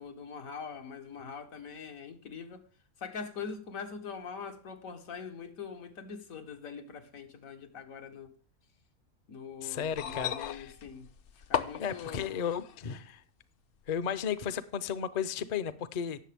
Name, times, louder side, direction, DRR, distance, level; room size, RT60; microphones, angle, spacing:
voice 1, 0.0-2.6 3.0-8.3 9.3-11.1 11.5-12.3, left 6 dB, 85° left, 1.6 m, -43 dB
voice 2, 9.6-10.7 11.6-13.2 13.9-16.2, left 8 dB, 50° left, 0.5 m, -34 dB
sound 1, 9.8-12.8 13.9-14.0, left 9 dB, 65° left, 0.9 m, -36 dB
18.0 x 6.7 x 3.5 m
omnidirectional pair, 1.4 m